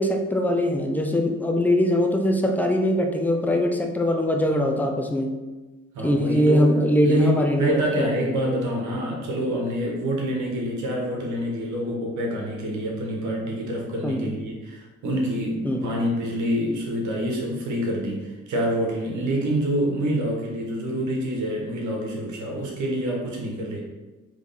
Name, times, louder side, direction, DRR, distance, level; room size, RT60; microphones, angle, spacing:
voice 1, 0.0-5.3 6.0-8.1 14.0-14.3 15.6-15.9, left 1 dB, 5° left, 3 dB, 0.5 m, -22 dB
voice 2, 5.9-6.7 7.0-23.8, equal, 75° right, -1 dB, 1.3 m, -27 dB
3.6 x 3.2 x 4.0 m, 1.2 s
cardioid pair, 90°, 30 cm